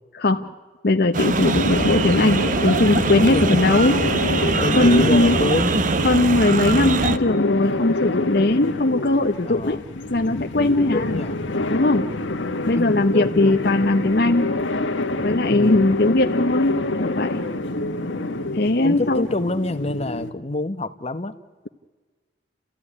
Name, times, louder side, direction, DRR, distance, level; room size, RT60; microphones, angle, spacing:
voice 1, 0.2-0.5 0.8-4.0 4.7-5.4 6.0-9.8 10.1-11.2 11.7-12.1 12.7-14.5 15.2-17.4 18.5-19.3, left 2 dB, 55° left, 5 dB, 0.8 m, -19 dB
sound 1, 1.1-7.2, right 3 dB, 45° right, 0.8 m, -22 dB
sound 2, 1.7-20.3, left 2 dB, 80° left, 1.3 m, -27 dB
voice 2, 3.3-3.8 4.6-5.8 9.4-9.8 10.5-11.5 12.0-12.3 12.8-13.6 15.5-15.8 18.8-21.3, left 2 dB, 35° left, 10 dB, 1.0 m, -27 dB
29.5 x 14.5 x 9.8 m, 1.4 s
head